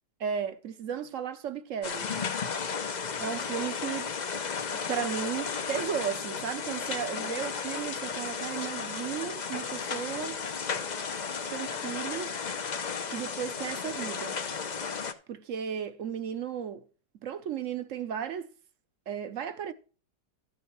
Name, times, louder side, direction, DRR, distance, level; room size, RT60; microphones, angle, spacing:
voice 1, 0.2-2.1 3.2-4.1 4.9-10.4 11.5-12.3 13.1-14.4 15.3-16.9 17.2-18.5 19.1-19.7, right 8 dB, 60° right, 0.9 m, -35 dB
sound 1, 1.8-15.1, left 5 dB, 65° left, 0.4 m, -34 dB
13.0 x 7.9 x 3.1 m
omnidirectional pair, 1.9 m